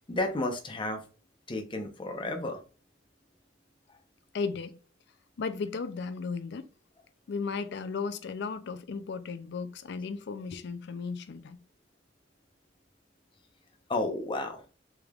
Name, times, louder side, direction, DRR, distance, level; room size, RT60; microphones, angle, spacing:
voice 1, 0.1-1.0 1.5-2.6 13.9-14.6, left 2 dB, 25° left, 0.7 m, -32 dB
voice 2, 4.3-4.8 5.4-6.7 7.3-11.6, left 5 dB, 65° left, 0.4 m, -35 dB
3.4 x 3.3 x 2.3 m
head